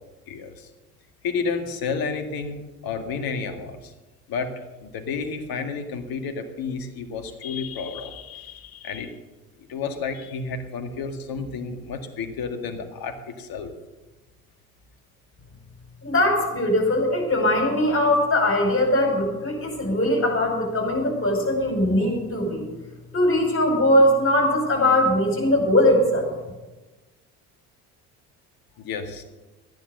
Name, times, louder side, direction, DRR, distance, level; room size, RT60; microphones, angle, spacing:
voice 1, 0.3-0.7 1.2-2.6 2.8-3.9 4.3-4.5 4.8-9.1 9.7-13.7 28.8-29.2, left 5 dB, 50° left, 7 dB, 2.1 m, -31 dB
voice 2, 16.0-22.6 23.1-26.3, left 1 dB, 30° left, 2 dB, 5.5 m, -21 dB
14.5 x 10.0 x 6.7 m, 1.1 s
hypercardioid pair, 60°, 45 cm